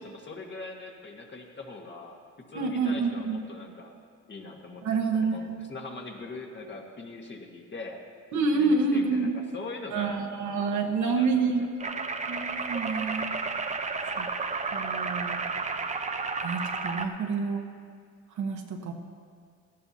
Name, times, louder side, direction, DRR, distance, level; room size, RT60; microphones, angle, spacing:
voice 1, 0.0-2.2 2.5-3.9 4.3-8.0 8.5-10.5 11.0-12.0, left 3 dB, 40° left, 1 dB, 1.7 m, -42 dB
voice 2, 2.5-3.4 4.8-5.6 8.3-9.3 9.9-11.7 12.3-13.3 14.2-14.3 14.7-15.4 16.4-17.6 18.4-18.9, right 4 dB, 70° right, 2 dB, 1.4 m, -28 dB
sound 1, 11.8-17.1, right 4 dB, 25° right, 0.7 m, -32 dB
17.5 x 13.5 x 2.9 m, 2.1 s
cardioid pair, 90°, 30 cm